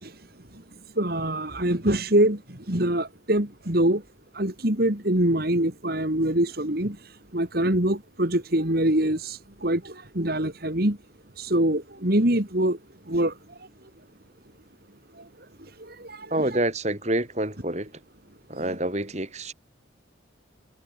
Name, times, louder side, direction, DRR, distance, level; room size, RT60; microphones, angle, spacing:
voice 1, 1.0-4.0 4.3-7.0 7.3-11.0 11.4-12.8 13.1-13.3 15.8-16.4, right 1 dB, 50° right, 3.0 m, -24 dB
voice 2, 16.3-17.9 18.5-19.5, right 1 dB, 35° right, 4.7 m, -27 dB
head